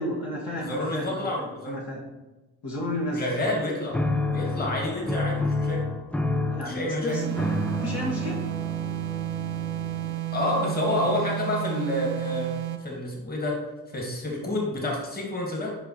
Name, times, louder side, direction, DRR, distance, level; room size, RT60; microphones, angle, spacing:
voice 1, 0.0-2.0 2.6-3.3 6.5-8.4 10.9-11.1, left 1 dB, 50° left, -5 dB, 1.7 m, -32 dB
voice 2, 0.5-1.8 3.1-4.0 4.3-5.8 6.7-7.2 10.3-12.5 12.8-13.6 13.9-15.7, left 1 dB, 20° left, -1 dB, 1.9 m, -29 dB
sound 1, 3.9-10.4, left 2 dB, 5° left, 0.5 m, -29 dB
sound 2, 7.1-12.9, right 16 dB, 50° right, 0.6 m, -32 dB
7.8 x 5.1 x 3.1 m, 1.1 s
figure-of-eight pair, 40°, 48 cm